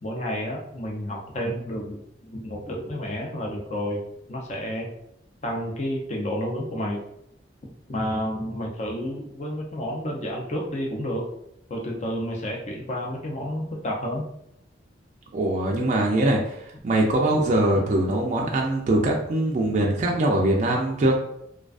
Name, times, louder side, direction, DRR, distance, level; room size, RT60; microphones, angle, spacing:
voice 1, 0.0-4.9 5.4-7.0 7.9-11.3 11.7-14.3, equal, 40° left, -1 dB, 0.5 m, -30 dB
voice 2, 15.3-21.2, right 1 dB, 40° right, 0 dB, 0.3 m, -22 dB
2.3 x 2.3 x 2.4 m, 0.75 s
head